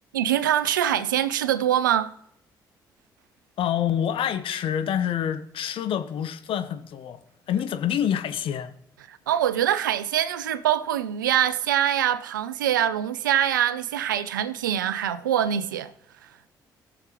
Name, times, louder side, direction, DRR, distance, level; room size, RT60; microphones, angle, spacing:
voice 1, 0.1-2.1 9.3-15.9, right 10 dB, 85° right, 0.4 m, -24 dB
voice 2, 3.6-7.2 7.5-8.7, left 9 dB, 60° left, 0.9 m, -27 dB
19.5 x 7.0 x 3.0 m
hypercardioid pair, 45°, 10 cm